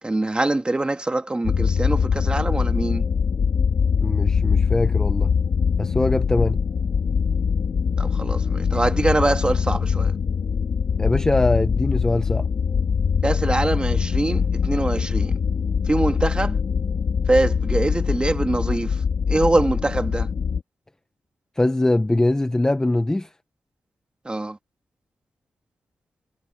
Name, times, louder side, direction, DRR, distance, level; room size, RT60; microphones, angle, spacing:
voice 1, 0.0-3.1 8.0-10.1 13.2-15.4 15.8-16.6 17.3-19.0 19.3-20.3 24.2-24.6, right 2 dB, 15° right, 1.7 m, -23 dB
sound 1, 1.4-20.6, left 6 dB, 55° left, 2.2 m, -22 dB
voice 2, 4.0-5.3 5.8-6.6 11.0-12.4 21.6-23.3, left 2 dB, 10° left, 0.6 m, -22 dB
wide cardioid pair, 165°, 7 cm